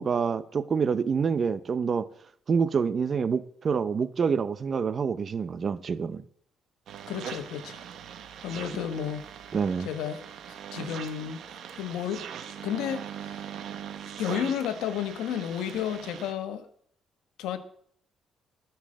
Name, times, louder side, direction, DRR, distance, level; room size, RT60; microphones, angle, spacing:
voice 1, 0.0-2.1 2.5-6.2 9.5-9.9, right 6 dB, 40° right, 0.7 m, -27 dB
sound 1, 6.9-16.3, right 9 dB, 70° right, 1.3 m, -41 dB
voice 2, 7.1-7.8 8.4-9.3 9.8-12.2 12.6-13.5 14.2-16.7 17.4-17.6, left 9 dB, 90° left, 1.2 m, -32 dB
13.5 x 5.8 x 7.7 m
cardioid pair, 100°, 0 cm